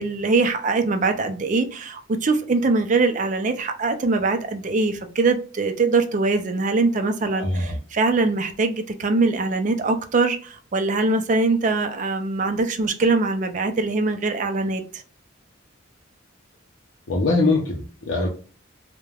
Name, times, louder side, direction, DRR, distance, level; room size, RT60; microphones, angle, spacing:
voice 1, 0.0-15.0, right 3 dB, 40° right, 0.4 m, -22 dB
voice 2, 7.3-7.8 17.1-18.3, left 2 dB, 75° left, 0.5 m, -22 dB
3.2 x 2.1 x 2.3 m
head